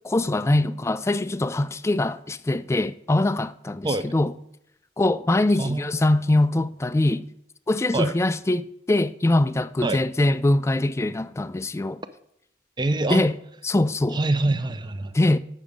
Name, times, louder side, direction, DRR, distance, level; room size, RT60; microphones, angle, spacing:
voice 1, 0.0-4.3 5.0-7.3 7.7-12.0 13.1-13.4 13.6-14.2 15.1-15.4, left 2 dB, 15° left, 0.3 m, -23 dB
voice 2, 5.6-5.9 7.9-8.1 9.8-10.0 12.8-13.3 14.1-15.2, right 2 dB, 25° right, 0.6 m, -25 dB
8.7 x 6.1 x 5.1 m
head